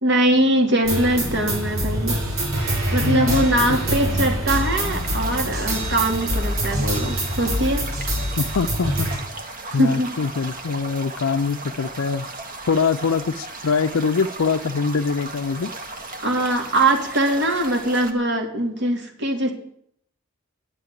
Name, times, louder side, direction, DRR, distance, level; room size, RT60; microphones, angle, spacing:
voice 1, 0.0-2.2 2.9-7.9 9.7-10.1 16.2-19.5, right 1 dB, 60° right, 3 dB, 2.5 m, -22 dB
sound 1, 0.8-9.2, right 1 dB, 75° right, 4.5 m, -25 dB
voice 2, 3.0-3.8 8.4-9.1 9.7-12.3 12.7-15.7, left 5 dB, 80° left, 6 dB, 0.5 m, -23 dB
sound 2, 4.7-18.1, right 2 dB, 40° right, 1.4 m, -36 dB
9.9 x 7.7 x 9.5 m, 0.68 s
head